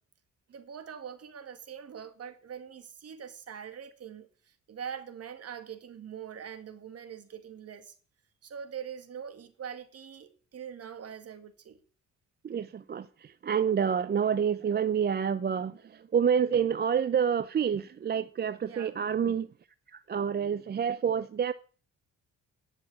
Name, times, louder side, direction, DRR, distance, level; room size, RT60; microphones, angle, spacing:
voice 1, 0.5-8.0 8.4-11.8 18.7-19.0, right 8 dB, 55° right, 1.9 m, -43 dB
voice 2, 12.4-19.5 19.9-21.5, right 7 dB, 35° right, 0.5 m, -28 dB
11.5 x 6.5 x 8.5 m
cardioid pair, 90°, 30 cm